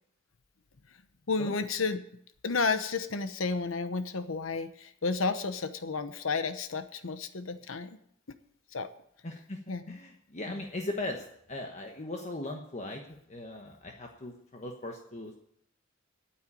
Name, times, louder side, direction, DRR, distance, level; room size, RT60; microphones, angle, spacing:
voice 1, 1.3-2.0 2.4-8.0 8.7-8.9 9.7-10.0, left 4 dB, 80° left, 10 dB, 1.0 m, -31 dB
voice 2, 9.2-9.6 9.9-13.0 13.3-15.4, left 2 dB, 35° left, 2 dB, 1.3 m, -38 dB
9.1 x 8.9 x 9.8 m, 0.69 s
head